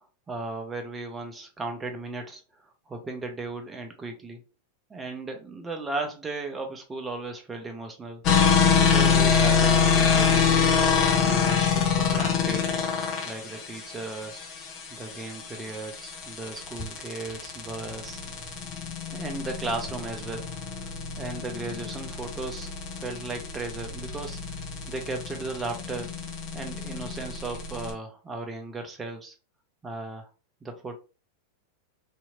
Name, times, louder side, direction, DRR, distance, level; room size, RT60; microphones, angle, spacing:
voice 1, 0.3-2.4 2.9-4.4 4.9-8.2 8.7-10.7 11.2-12.6 13.2-14.5 14.9-18.2 19.1-20.5 21.2-24.4 24.9-26.1 26.5-29.3 29.8-30.3 30.6-31.0, right 3 dB, 20° right, 4 dB, 0.8 m, -36 dB
sound 1, 8.2-27.9, left 6 dB, 40° left, 0.8 m, -25 dB
2.8 x 2.7 x 2.5 m, 0.32 s
figure-of-eight pair, 90°, 0 cm